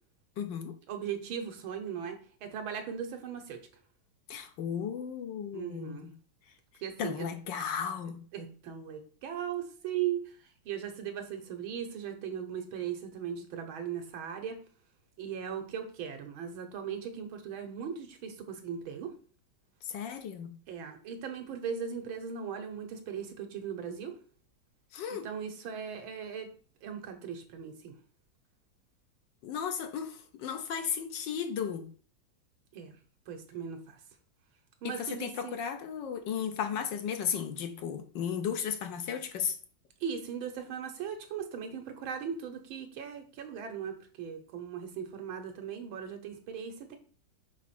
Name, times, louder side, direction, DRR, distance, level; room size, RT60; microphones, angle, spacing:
voice 1, 0.4-0.8 4.3-6.1 7.0-8.2 19.8-20.5 24.9-25.3 29.4-31.9 34.8-39.6, left 7 dB, 70° left, 1.4 m, -35 dB
voice 2, 0.9-3.6 5.5-6.1 6.8-7.3 8.3-10.3 10.7-14.6 15.2-19.1 20.7-24.2 25.2-26.5 26.8-27.9 32.7-33.0 33.3-34.0 34.8-35.6 40.0-47.0, right 8 dB, 80° right, 1.9 m, -38 dB
5.9 x 3.6 x 5.9 m
omnidirectional pair, 2.2 m